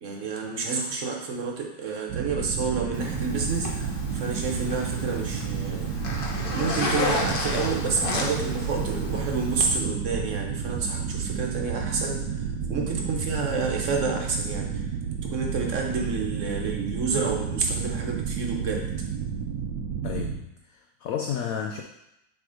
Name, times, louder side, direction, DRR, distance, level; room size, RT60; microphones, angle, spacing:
voice 1, 0.0-5.9 6.5-14.9 15.2-18.9, right 4 dB, 50° right, 1 dB, 1.2 m, -29 dB
sound 1, 2.1-20.4, right 7 dB, 70° right, 1.2 m, -31 dB
Zipper (clothing), 2.9-9.8, left 2 dB, 40° left, 0.8 m, -32 dB
voice 2, 20.0-21.8, left 8 dB, 70° left, 3 dB, 0.8 m, -32 dB
7.2 x 3.5 x 5.0 m, 0.87 s
omnidirectional pair, 2.0 m